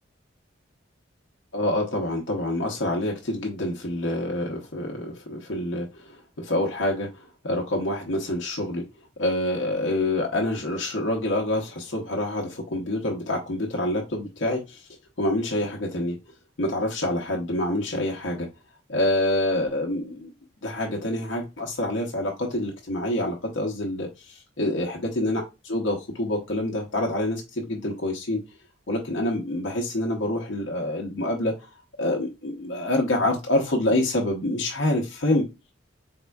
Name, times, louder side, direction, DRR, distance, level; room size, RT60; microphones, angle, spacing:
voice 1, 1.5-8.8 9.2-14.9 15.2-16.2 16.6-18.5 18.9-20.3 20.6-28.4 28.9-31.7 32.0-35.4, left 1 dB, 65° left, 0.8 m, -27 dB
4.3 x 3.6 x 2.3 m
head